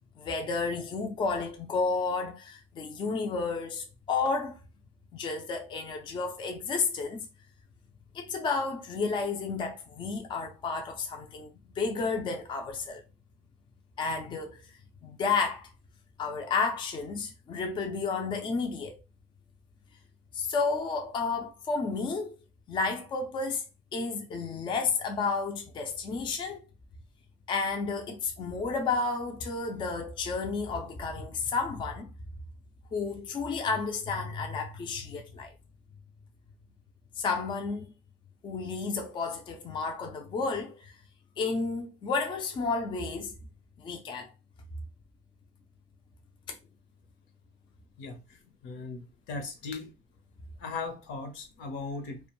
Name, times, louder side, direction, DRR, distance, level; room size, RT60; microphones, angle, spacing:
voice 1, 0.2-4.6 5.1-7.2 8.1-11.5 11.8-13.0 14.0-14.6 15.0-15.7 16.2-18.9 20.3-22.4 22.7-23.6 23.9-26.6 27.5-32.1 32.9-35.5 37.2-37.9 38.4-40.9 41.4-43.3 43.8-44.3, left 4 dB, 25° left, 0.4 m, -31 dB
voice 2, 48.0-49.9 50.6-52.3, left 3 dB, 75° left, 0.9 m, -38 dB
2.4 x 2.2 x 2.9 m
cardioid pair, 160°, 20 cm